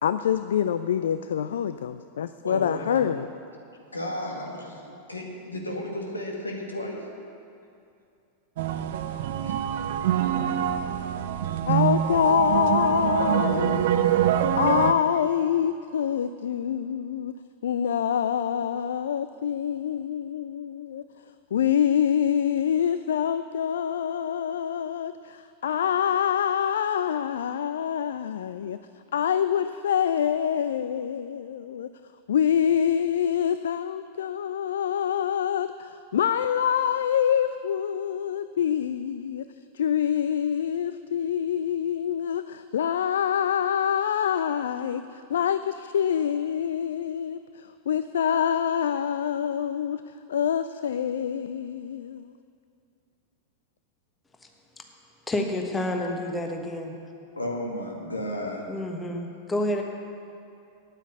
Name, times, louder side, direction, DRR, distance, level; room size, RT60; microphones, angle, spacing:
voice 1, 0.0-3.3 11.7-13.8 14.6-17.3 17.6-21.0 21.5-28.8 29.1-31.9 32.3-39.5 39.7-50.0 50.3-52.3, left 9 dB, 65° left, 12 dB, 0.3 m, -26 dB
voice 2, 2.4-3.1 3.9-7.0 9.4-9.5 57.4-58.6, left 1 dB, 80° left, 0 dB, 1.8 m, -33 dB
sound 1, 8.6-14.9, right 10 dB, 55° right, 0.6 m, -25 dB
voice 3, 55.3-57.0 58.7-59.8, left 1 dB, 15° left, 3 dB, 1.3 m, -29 dB
9.2 x 9.0 x 8.5 m, 2.5 s
figure-of-eight pair, 90°, 0 cm